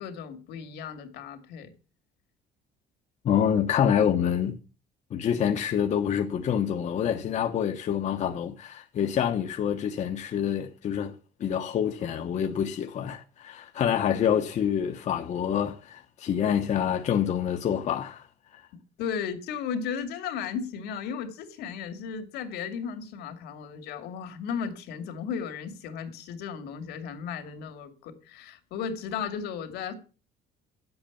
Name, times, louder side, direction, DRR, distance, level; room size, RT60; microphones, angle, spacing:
voice 1, 0.0-1.7 18.7-29.9, left 7 dB, 80° left, 2.5 m, -35 dB
voice 2, 3.2-4.6 5.1-11.1 11.4-18.2, left 8 dB, 45° left, 1.0 m, -27 dB
11.0 x 7.9 x 7.1 m
cardioid pair, 140°, 17 cm